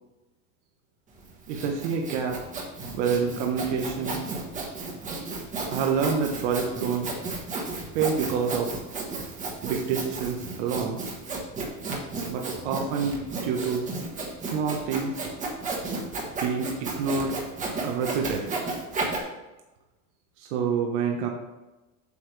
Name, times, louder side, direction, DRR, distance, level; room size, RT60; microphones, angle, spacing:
Sawing, 1.2-19.2, right 3 dB, 20° right, 1.3 m, -33 dB
voice 1, 1.5-2.4 2.9-4.2 5.7-7.1 7.9-8.7 9.6-11.0 12.3-13.9 14.5-15.2 16.4-17.3 17.8-18.6 20.4-21.3, right 6 dB, 70° right, 2 dB, 1.2 m, -27 dB
8.5 x 6.5 x 3.4 m, 1.1 s
supercardioid pair, 160°, 37 cm